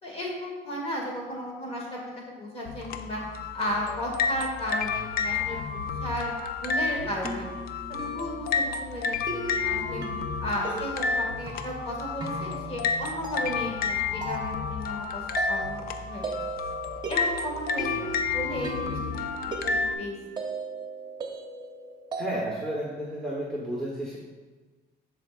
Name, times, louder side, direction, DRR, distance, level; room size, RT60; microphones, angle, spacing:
voice 1, 0.0-3.2 3.5-6.3 6.6-7.5 7.9-10.0 10.4-16.3 17.1-20.2, equal, 35° left, -1 dB, 1.6 m, -35 dB
sound 1, 2.7-19.9, left 5 dB, 65° left, 0.5 m, -31 dB
sound 2, 7.0-22.8, right 3 dB, 25° right, 1.0 m, -38 dB
voice 2, 22.2-24.2, right 1 dB, 5° left, -5 dB, 1.2 m, -32 dB
12.5 x 4.6 x 2.5 m, 1.3 s
cardioid pair, 110°, 17 cm